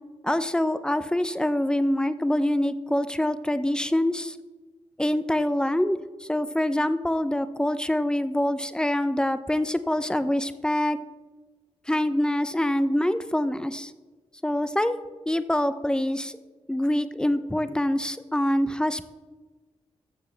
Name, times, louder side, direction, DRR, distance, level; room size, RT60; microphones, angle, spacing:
voice 1, 0.2-4.4 5.0-11.0 11.9-13.9 14.4-15.0 15.3-16.4 16.7-19.0, left 1 dB, 5° left, 12 dB, 0.6 m, -25 dB
13.0 x 6.8 x 3.3 m, 1.3 s
cardioid pair, 55°, 12 cm